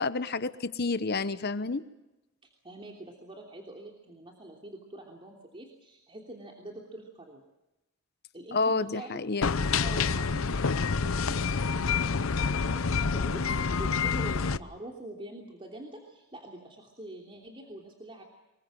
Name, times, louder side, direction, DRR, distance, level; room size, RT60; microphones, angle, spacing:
voice 1, 0.0-1.8 8.5-9.5, left 3 dB, 50° left, 13 dB, 1.0 m, -29 dB
voice 2, 2.4-7.4 8.3-9.2 9.7-12.1 12.4-13.4 13.7-18.2, right 1 dB, 25° right, 0 dB, 3.1 m, -45 dB
sound 1, 9.4-14.6, left 5 dB, 75° left, 0.8 m, -27 dB
25.0 x 22.0 x 7.6 m, 0.98 s
head